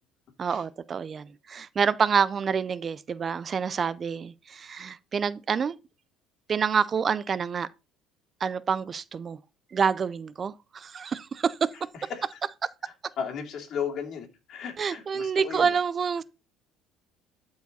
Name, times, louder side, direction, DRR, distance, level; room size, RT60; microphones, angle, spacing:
voice 1, 0.4-5.7 6.5-7.7 8.4-9.4 9.7-11.7 14.8-16.2, right 6 dB, 30° right, 0.4 m, -27 dB
voice 2, 11.7-12.4 12.8-15.8, left 7 dB, 50° left, 2.7 m, -36 dB
12.5 x 4.7 x 4.1 m
cardioid pair, 130°, 0 cm